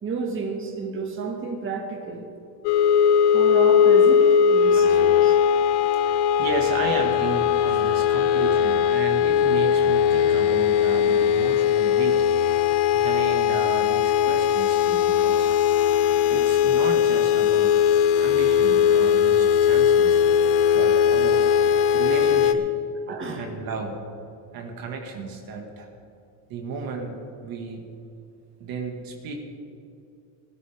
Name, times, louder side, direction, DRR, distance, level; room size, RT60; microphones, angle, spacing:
voice 1, 0.0-2.3 3.3-5.4 5.9-6.0 23.1-23.5, right 4 dB, 30° right, 1 dB, 2.1 m, -31 dB
sound 1, 2.6-22.5, left 8 dB, 80° left, 0.9 m, -19 dB
voice 2, 5.6-12.2 12.9-15.5 16.3-17.8 18.1-20.2 20.7-21.5 21.9-22.7 23.1-24.0 24.5-25.9 26.5-27.9 28.6-29.3, right 4 dB, 60° right, 2 dB, 2.2 m, -33 dB
19.0 x 12.5 x 3.6 m, 2.6 s
cardioid pair, 115°, 40 cm